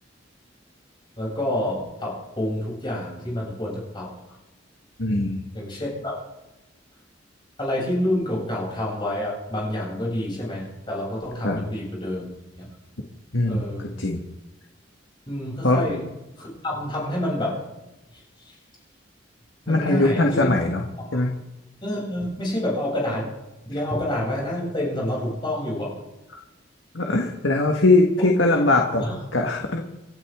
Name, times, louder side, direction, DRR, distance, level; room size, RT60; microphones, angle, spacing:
voice 1, 1.2-4.1 5.5-6.2 7.6-12.3 12.6-12.7 13.5-14.1 15.3-16.0 16.4-17.6 18.4-18.6 19.7-20.5 21.1-21.2 21.8-23.3 23.7-25.9 28.2-29.2, left 1 dB, 25° left, -4 dB, 7.6 m, -28 dB
voice 2, 5.0-5.4 11.4-11.6 13.3-14.2 15.6-15.8 19.7-20.8 21.1-21.3 26.9-29.0 29.3-29.8, left 2 dB, 80° left, 1 dB, 1.7 m, -21 dB
29.5 x 12.0 x 3.7 m, 1.0 s
head